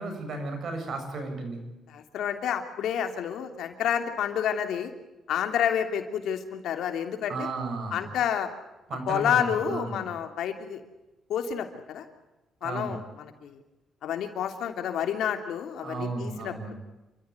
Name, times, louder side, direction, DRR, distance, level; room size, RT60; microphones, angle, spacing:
voice 1, 0.0-1.6 7.3-8.0 8.9-10.0 12.6-13.0 15.8-16.7, right 3 dB, 60° right, 5 dB, 7.5 m, -34 dB
voice 2, 1.9-4.9 5.3-7.5 7.9-8.5 9.1-10.8 11.3-12.0 12.6-13.6 14.0-16.7, left 9 dB, 75° left, 6 dB, 3.0 m, -29 dB
28.5 x 14.0 x 9.7 m, 1.0 s
cardioid pair, 90°, 0 cm